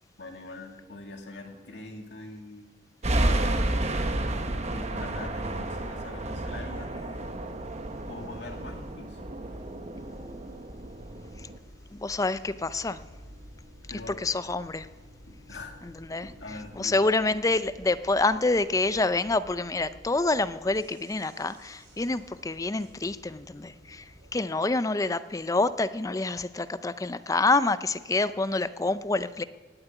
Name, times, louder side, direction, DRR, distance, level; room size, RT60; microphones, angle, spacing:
voice 1, 0.2-2.7 4.3-7.4 8.1-9.2 13.9-14.2 15.3-15.8 16.2-17.0, left 2 dB, 70° left, 3 dB, 2.1 m, -43 dB
sound 1, 3.0-11.6, right 1 dB, 35° right, 1.0 m, -31 dB
sound 2, 6.7-24.4, equal, 80° right, 5.5 m, -51 dB
voice 2, 11.9-13.0 14.2-14.9 15.8-16.3 16.7-29.4, left 3 dB, 20° left, 14 dB, 0.4 m, -27 dB
17.0 x 7.6 x 9.1 m, 1.4 s
head